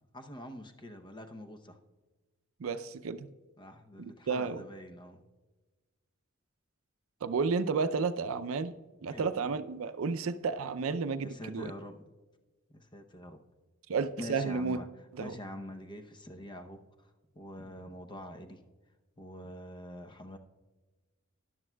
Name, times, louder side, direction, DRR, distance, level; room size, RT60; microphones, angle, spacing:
voice 1, 0.0-1.8 3.6-5.2 9.1-9.3 11.2-12.1 12.7-13.4 14.2-14.9 15.2-16.8 17.3-18.6 19.2-20.4, left 1 dB, 20° left, 6 dB, 0.7 m, -45 dB
voice 2, 2.6-3.3 4.0-4.6 7.2-8.7 9.0-11.7 13.9-14.8 15.2-15.4, right 4 dB, 85° right, 12 dB, 0.5 m, -32 dB
13.5 x 10.5 x 2.2 m, 1.2 s
head